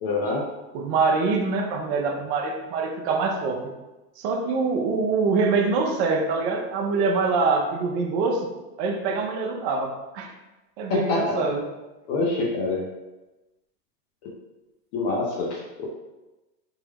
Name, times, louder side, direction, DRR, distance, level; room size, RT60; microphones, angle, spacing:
voice 1, 0.0-0.4 10.9-11.5 12.1-12.8 14.9-15.9, left 3 dB, 30° left, -3 dB, 0.4 m, -25 dB
voice 2, 0.7-3.7 4.2-8.5 8.8-10.3 10.8-11.7, right 4 dB, 45° right, 2 dB, 0.5 m, -24 dB
3.5 x 2.0 x 3.3 m, 1.1 s
supercardioid pair, 135°, 49 cm